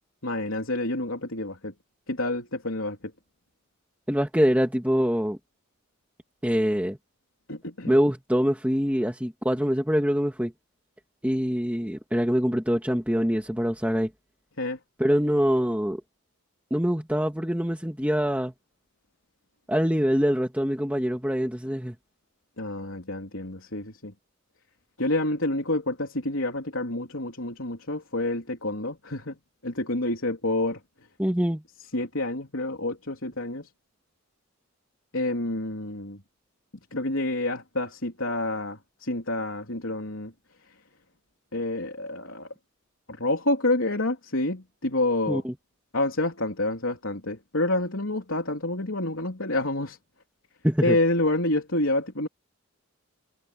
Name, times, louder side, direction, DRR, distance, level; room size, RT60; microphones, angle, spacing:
voice 1, 0.2-1.7 2.1-3.0 7.5-8.0 14.6-14.8 22.6-24.1 25.0-29.4 29.6-30.8 31.9-33.7 35.1-36.2 36.9-40.3 41.5-42.5 43.2-45.4 45.9-50.0 50.8-52.3, left 2 dB, 70° left, 3.8 m, -28 dB
voice 2, 4.1-5.4 6.4-7.0 7.9-10.5 11.2-14.1 15.0-16.0 16.7-18.5 19.7-22.0 31.2-31.6 45.3-45.5 50.6-51.0, equal, 5° right, 2.3 m, -24 dB
head